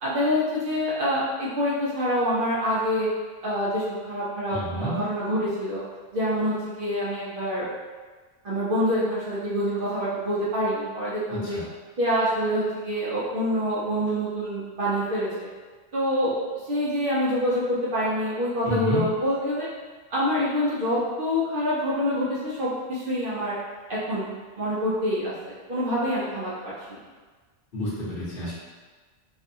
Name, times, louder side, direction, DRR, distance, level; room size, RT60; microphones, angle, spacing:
voice 1, 0.0-3.1 3.4-5.8 6.1-7.6 8.4-11.6 12.0-15.5 15.9-16.4 16.7-19.7 20.1-23.6 23.9-24.3 24.6-26.5 26.9-27.0, equal, 55° right, -9 dB, 0.7 m, -26 dB
voice 2, 4.5-4.9 11.3-11.6 18.6-19.0 27.7-28.5, equal, 55° left, -8 dB, 0.9 m, -29 dB
2.6 x 2.4 x 2.6 m, 1.4 s
omnidirectional pair, 1.2 m